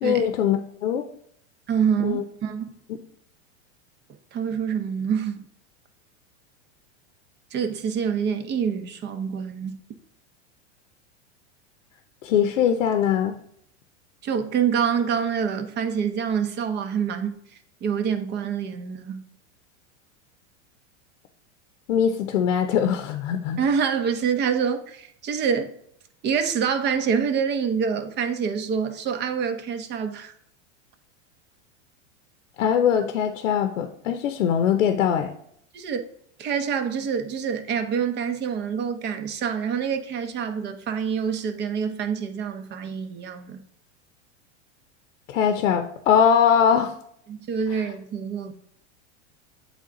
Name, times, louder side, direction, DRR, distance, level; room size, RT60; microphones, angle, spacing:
voice 1, 0.0-1.0 2.0-2.2 12.2-13.4 21.9-23.6 32.6-35.3 45.3-46.9 47.7-47.8, left 8 dB, 85° left, 0.7 m, -21 dB
voice 2, 1.7-2.7 4.3-5.5 7.5-9.8 14.2-17.4 17.8-19.3 23.6-25.8 26.2-30.3 35.7-36.0 36.4-43.6 47.3-48.5, right 7 dB, 30° right, 0.7 m, -26 dB
7.9 x 3.5 x 3.7 m
supercardioid pair, 130°, 37 cm